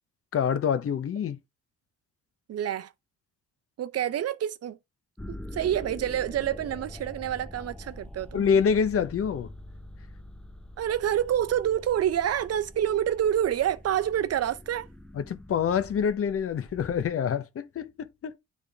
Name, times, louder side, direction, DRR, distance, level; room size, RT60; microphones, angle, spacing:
voice 1, 0.3-1.4 8.3-9.5 15.1-18.4, left 7 dB, 50° left, 0.8 m, -26 dB
voice 2, 2.5-2.9 3.8-4.8 5.3-8.5 10.8-14.9, right 10 dB, 55° right, 0.6 m, -27 dB
sound 1, 5.2-17.1, left 1 dB, 5° left, 0.6 m, -44 dB
9.6 x 3.6 x 3.5 m
cardioid pair, 90°, 30 cm